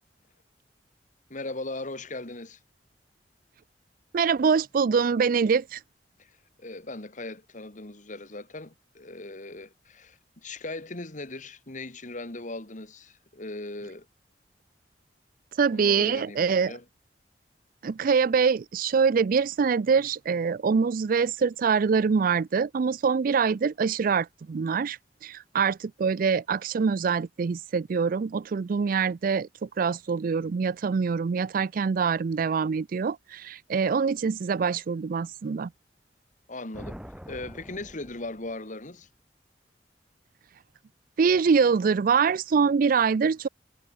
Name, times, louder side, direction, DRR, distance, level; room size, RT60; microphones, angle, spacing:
voice 1, 1.3-2.6 6.2-14.1 15.7-16.8 36.5-37.0 37.3-39.1, left 2 dB, 45° left, 2.4 m, -39 dB
voice 2, 4.1-5.8 15.6-16.7 17.8-35.7 41.2-43.5, right 5 dB, 50° right, 0.4 m, -24 dB
sound 1, 36.7-38.9, equal, 5° right, 6.7 m, -44 dB
head